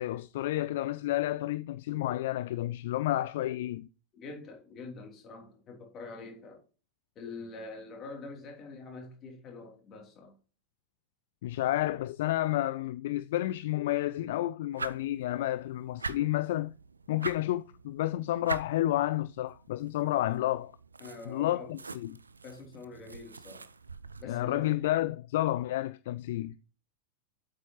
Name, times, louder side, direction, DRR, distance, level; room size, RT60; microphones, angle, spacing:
voice 1, 0.0-3.9 11.4-16.7 17.1-20.7 21.3-22.2 24.2-26.5, left 15 dB, 55° left, 0.3 m, -30 dB
voice 2, 4.1-6.6 7.1-10.3 21.0-21.8 22.4-23.7 24.2-24.8, left 3 dB, 30° left, 3.3 m, -45 dB
sound 1, 14.7-24.2, right 4 dB, 75° right, 0.5 m, -44 dB
8.4 x 7.5 x 3.1 m
figure-of-eight pair, 90°, 0 cm